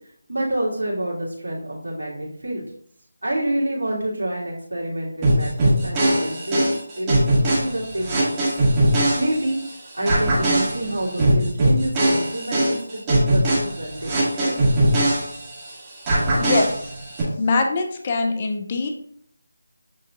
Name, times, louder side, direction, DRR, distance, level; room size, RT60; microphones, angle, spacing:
voice 1, 0.3-2.6 3.2-6.7 7.0-8.4 9.1-9.6 9.9-14.5, right 1 dB, 90° right, -4 dB, 1.9 m, -27 dB
sound 1, 5.2-9.7 10.1-15.7 16.1-17.2, right 1 dB, 20° right, 1.4 m, -21 dB
voice 2, 16.4-16.9 17.4-18.9, left 3 dB, 30° left, 4 dB, 0.4 m, -23 dB
7.6 x 2.7 x 2.4 m, 0.65 s
figure-of-eight pair, 165°, 0 cm